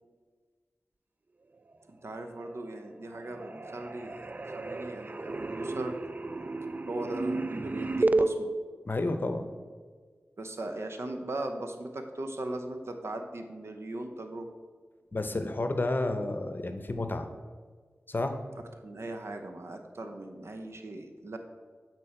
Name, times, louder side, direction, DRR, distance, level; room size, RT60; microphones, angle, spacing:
voice 1, 1.9-4.2 4.5-6.0 6.9-8.5 10.4-14.5 18.8-21.4, right 2 dB, 65° right, 5 dB, 0.8 m, -38 dB
sound 1, 2.3-2.9 3.1-8.3, right 2 dB, 35° right, 0.3 m, -32 dB
voice 2, 8.8-9.5 15.1-17.3 18.1-18.4, left 2 dB, 45° left, 7 dB, 0.7 m, -30 dB
8.4 x 4.5 x 4.3 m, 1.5 s
cardioid pair, 45°, 5 cm